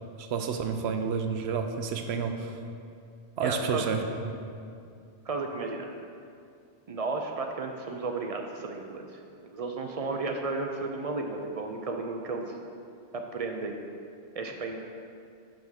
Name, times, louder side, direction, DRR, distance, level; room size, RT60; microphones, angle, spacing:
voice 1, 0.2-2.6 3.4-4.0, right 6 dB, 70° right, 6 dB, 0.8 m, -30 dB
voice 2, 3.4-3.8 5.3-5.9 6.9-12.5 13.1-13.8 14.4-14.8, right 3 dB, 50° right, 3 dB, 0.4 m, -33 dB
7.5 x 3.5 x 6.3 m, 2.4 s
omnidirectional pair, 1.2 m